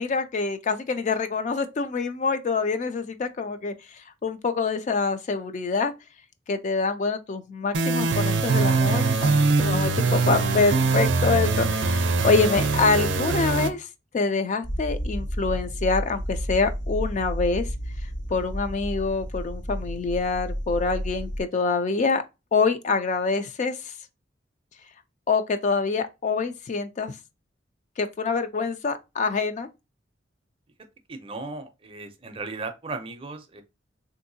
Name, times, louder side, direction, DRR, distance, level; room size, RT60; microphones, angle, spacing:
voice 1, 0.0-5.9 6.5-13.9 14.1-17.7 18.3-22.2 22.5-23.9 25.3-27.1 28.0-29.7, left 4 dB, 40° left, 0.3 m, -26 dB
sound 1, 7.7-13.7, right 3 dB, 80° right, 0.5 m, -22 dB
sound 2, 14.6-21.4, equal, 65° left, 1.3 m, -31 dB
voice 2, 31.1-33.6, right 3 dB, 30° right, 0.5 m, -36 dB
3.4 x 2.6 x 2.6 m
head